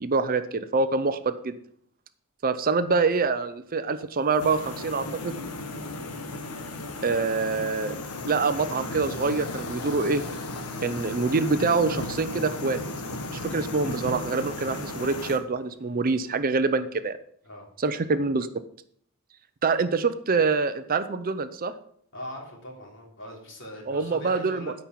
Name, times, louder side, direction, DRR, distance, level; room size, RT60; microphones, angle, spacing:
voice 1, 0.0-1.6 2.4-5.4 7.0-8.0 8.3-10.2 10.8-12.8 13.3-17.2 17.8-18.5 19.6-21.7 23.9-24.7, right 4 dB, 40° right, 11 dB, 0.6 m, -25 dB
sound 1, 4.4-15.4, left 2 dB, 90° left, 1.3 m, -35 dB
voice 2, 22.1-24.7, left 1 dB, 55° left, -1 dB, 3.2 m, -40 dB
13.0 x 5.4 x 5.9 m, 0.64 s
head